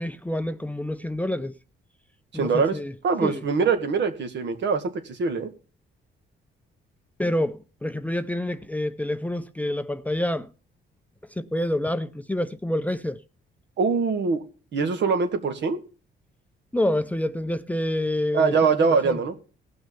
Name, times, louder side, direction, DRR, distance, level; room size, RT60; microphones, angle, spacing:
voice 1, 0.0-1.5 2.3-2.9 3.2-3.4 7.2-10.5 11.3-13.2 16.7-18.5 18.8-19.2, left 1 dB, 5° left, 0.6 m, -27 dB
voice 2, 2.3-2.8 3.0-5.5 13.8-14.4 14.7-15.8 18.3-19.3, right 5 dB, 65° right, 2.0 m, -23 dB
17.5 x 6.1 x 5.7 m
cardioid pair, 90°, 20 cm